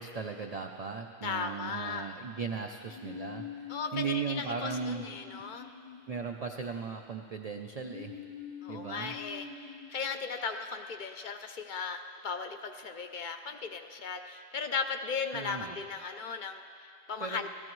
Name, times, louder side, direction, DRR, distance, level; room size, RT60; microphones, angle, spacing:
voice 1, 0.0-5.1 6.1-8.2 8.7-9.2 15.3-15.8 17.2-17.5, right 5 dB, 80° right, 3 dB, 0.3 m, -37 dB
sound 1, 1.2-2.3 2.9-6.8 7.8-10.2, left 8 dB, 85° left, 1.5 m, -46 dB
voice 2, 1.2-2.1 3.7-5.7 8.6-17.5, left 5 dB, 60° left, 6 dB, 0.5 m, -37 dB
16.0 x 14.0 x 3.1 m, 2.4 s
omnidirectional pair, 1.3 m